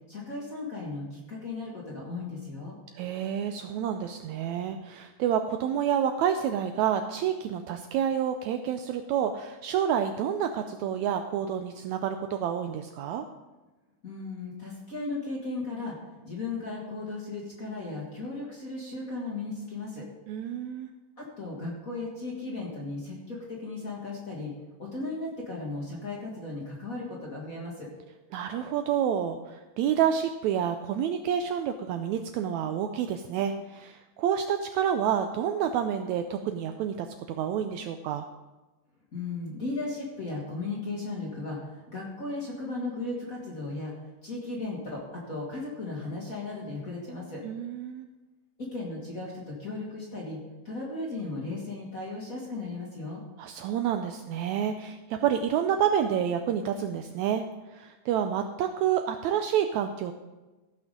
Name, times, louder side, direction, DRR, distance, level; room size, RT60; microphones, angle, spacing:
voice 1, 0.1-2.7 14.0-20.1 21.2-24.5 24.8-27.9 39.1-43.9 44.2-47.4 48.6-53.2, left 3 dB, 35° left, -3 dB, 1.7 m, -36 dB
voice 2, 3.0-13.3 20.3-20.9 28.3-38.3 47.4-48.1 53.4-57.4 57.7-60.1, right 9 dB, 80° right, 7 dB, 1.7 m, -29 dB
15.0 x 5.9 x 5.2 m, 1.2 s
omnidirectional pair, 3.7 m